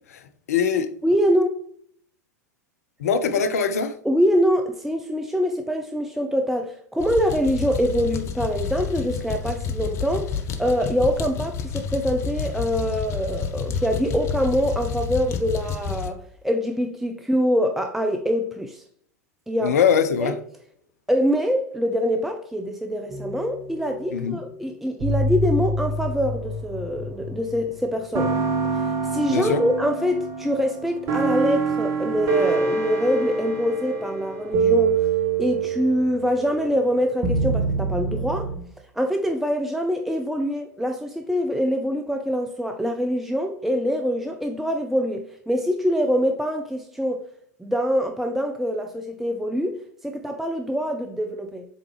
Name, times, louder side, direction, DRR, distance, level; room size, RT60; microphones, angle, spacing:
voice 1, 0.5-0.9 3.0-4.0 19.6-20.4 24.1-24.4 29.3-29.6, left 6 dB, 60° left, 0.7 m, -22 dB
voice 2, 1.0-1.5 4.0-18.8 19.5-19.8 20.2-20.3 21.1-28.3 28.7-35.0 35.4-38.5 38.9-47.2 47.6-51.7, equal, ahead, 0.4 m, -24 dB
sound 1, 7.0-16.1, left 6 dB, 30° left, 0.8 m, -29 dB
sound 2, 23.1-24.3 25.0-27.6 28.1-38.6, right 3 dB, 35° right, 1.2 m, -26 dB
7.9 x 3.6 x 3.3 m
figure-of-eight pair, 90°, 9 cm